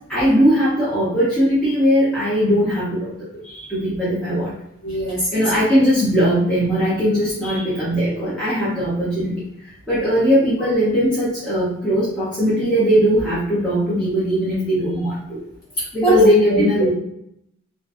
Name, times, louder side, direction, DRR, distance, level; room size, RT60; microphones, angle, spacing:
voice 1, 0.1-3.1 3.4-4.5 5.3-9.3 9.9-15.4 15.9-16.9, equal, 5° left, -11 dB, 0.6 m, -19 dB
voice 2, 4.8-5.4 15.8-16.6, left 1 dB, 45° left, -8 dB, 1.4 m, -19 dB
2.5 x 2.4 x 2.4 m, 0.76 s
head